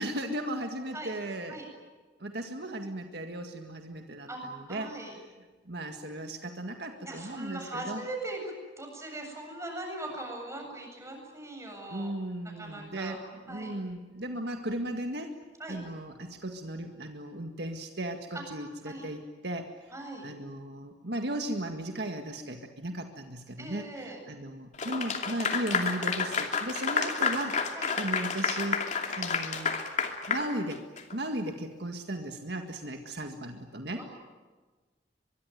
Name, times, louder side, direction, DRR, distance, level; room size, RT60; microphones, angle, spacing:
voice 1, 0.0-1.6 2.2-4.3 4.5-5.0 5.7-8.0 11.9-15.4 15.7-19.7 20.2-27.7 28.0-28.9 29.2-29.7 30.3-30.8 31.1-34.0, right 1 dB, 65° right, 4 dB, 1.9 m, -36 dB
voice 2, 4.3-5.1 7.0-12.1 12.6-13.2 13.5-13.7 15.6-15.8 18.3-18.4 18.8-19.0 19.9-20.3 23.6-24.2 27.3-27.4 27.8-27.9 33.9-34.1, right 2 dB, 15° right, 2 dB, 7.8 m, -40 dB
Clapping / Applause, 24.8-31.1, left 5 dB, 45° left, 2.7 m, -30 dB
24.0 x 23.0 x 9.4 m, 1.3 s
head